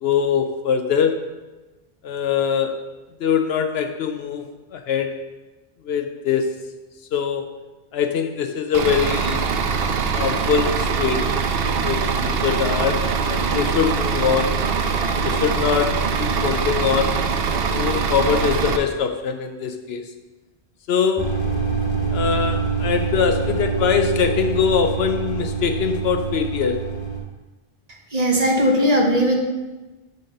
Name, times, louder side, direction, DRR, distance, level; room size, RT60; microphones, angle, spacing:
voice 1, 0.0-1.2 2.0-2.8 3.2-4.5 4.7-5.1 5.8-6.6 7.1-7.5 7.9-9.5 10.1-14.6 15.2-20.1 20.9-21.3 22.1-26.9, left 7 dB, 80° left, 7 dB, 0.8 m, -23 dB
Bus / Idling, 8.7-18.8, right 5 dB, 70° right, 0.8 m, -22 dB
sound 1, 21.2-27.2, right 5 dB, 20° left, 1.5 m, -25 dB
voice 2, 28.1-29.4, equal, 40° right, 0 dB, 1.2 m, -18 dB
6.4 x 5.3 x 5.3 m, 1.2 s
omnidirectional pair, 1.1 m